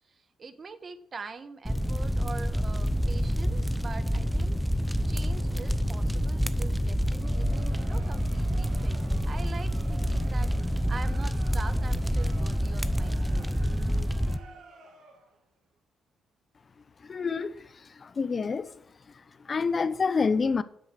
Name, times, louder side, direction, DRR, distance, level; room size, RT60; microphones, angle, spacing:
voice 1, 0.1-4.6 5.1-9.0 9.3-10.5 10.9-13.7, right 4 dB, 40° right, 1.4 m, -43 dB
sound 1, 1.6-14.4, equal, ahead, 0.8 m, -27 dB
Crowd, 6.9-15.4, right 3 dB, 75° right, 2.8 m, -50 dB
voice 2, 17.0-18.7 19.4-20.6, left 5 dB, 35° left, 0.9 m, -28 dB
11.0 x 7.8 x 7.7 m
cardioid pair, 90°, 0 cm